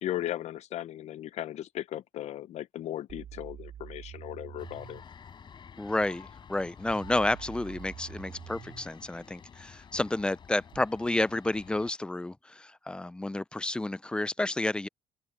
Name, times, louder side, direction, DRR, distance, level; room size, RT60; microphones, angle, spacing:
voice 1, 0.0-5.0, left 12 dB, 70° left, 0.7 m, -37 dB
sound 1, 3.1-5.1 6.9-8.9 10.7-10.8, right 10 dB, 65° right, 2.6 m, -46 dB
sound 2, 4.6-11.9, left 7 dB, 40° left, 6.5 m, -50 dB
voice 2, 5.8-14.9, left 2 dB, 10° left, 0.4 m, -30 dB
open air
cardioid pair, 130°, 12 cm